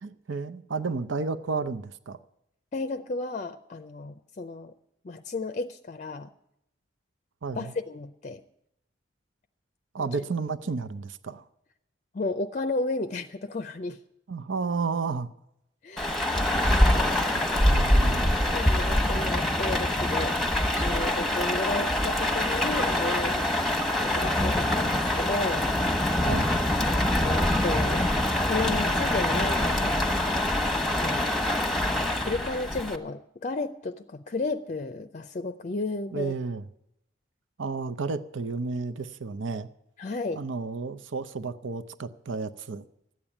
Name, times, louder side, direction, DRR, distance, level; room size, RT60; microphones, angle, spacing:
voice 1, 0.0-2.2 7.4-7.7 9.9-11.4 14.3-15.3 17.3-17.4 17.7-18.3 26.3-26.6 36.1-36.7 37.6-39.7 40.3-42.9, right 4 dB, 85° right, 12 dB, 0.7 m, -32 dB
voice 2, 2.7-4.7 5.0-6.3 7.6-8.4 12.1-14.0 15.8-16.2 16.7-17.5 18.5-20.5 20.7-23.7 24.0-25.7 27.2-28.1 28.5-29.9 30.3-30.4 30.7-31.3 32.2-36.3 40.0-40.4, left 3 dB, 40° left, 9 dB, 0.5 m, -33 dB
Rain, 16.0-33.0, left 1 dB, ahead, 1.2 m, -25 dB
12.5 x 8.9 x 9.9 m, 0.81 s
head